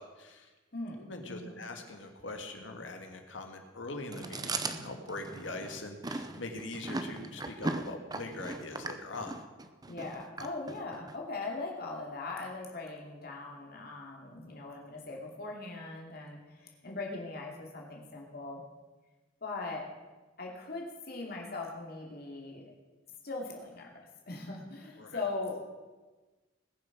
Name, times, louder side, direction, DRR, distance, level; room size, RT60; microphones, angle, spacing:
voice 1, 0.0-0.5 1.0-9.4 25.0-25.2, left 2 dB, 85° left, 4 dB, 1.9 m, -42 dB
voice 2, 0.7-1.6 9.9-18.6 19.4-19.9 20.4-22.6 23.2-25.6, left 3 dB, 55° left, -1 dB, 2.7 m, -40 dB
Chewing mastication, 4.1-11.2, right 2 dB, 20° right, 0.7 m, -38 dB
20.0 x 7.0 x 6.1 m, 1.3 s
head